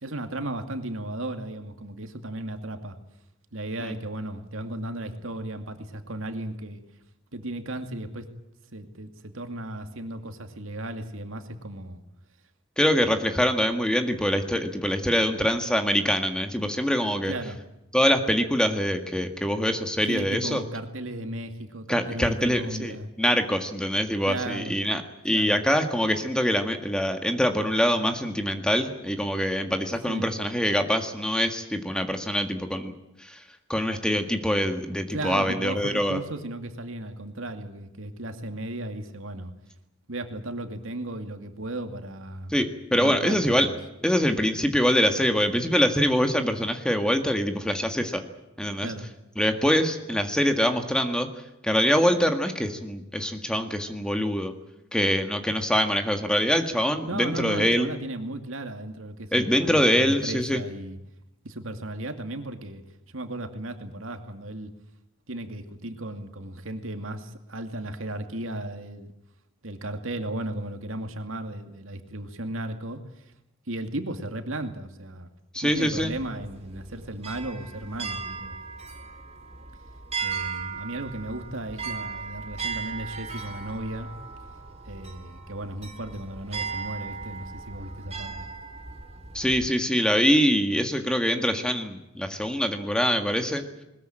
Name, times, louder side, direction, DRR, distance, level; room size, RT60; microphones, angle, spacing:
voice 1, 0.0-3.0 3.5-6.8 7.3-8.2 8.7-12.0 13.0-13.1 17.3-17.6 20.1-23.1 24.3-24.8 25.3-25.6 30.1-30.3 35.1-39.5 40.1-42.6 42.9-43.8 48.8-49.1 57.1-61.0 61.4-62.8 63.1-64.7 65.3-69.1 69.6-73.0 73.7-75.3 75.6-78.6 80.2-84.1 84.8-88.4, right 1 dB, 75° right, 6 dB, 2.4 m, -35 dB
voice 2, 12.8-17.3 17.9-20.6 21.9-32.9 33.2-33.4 33.7-36.2 42.5-43.7 44.0-48.2 48.6-48.9 49.4-51.3 51.6-54.5 54.9-57.9 59.3-60.6 75.5-76.1 89.3-93.6, equal, 5° left, 6 dB, 1.8 m, -24 dB
sound 1, 75.7-89.7, right 5 dB, 30° right, 2.5 m, -37 dB
21.0 x 21.0 x 9.0 m, 0.88 s
head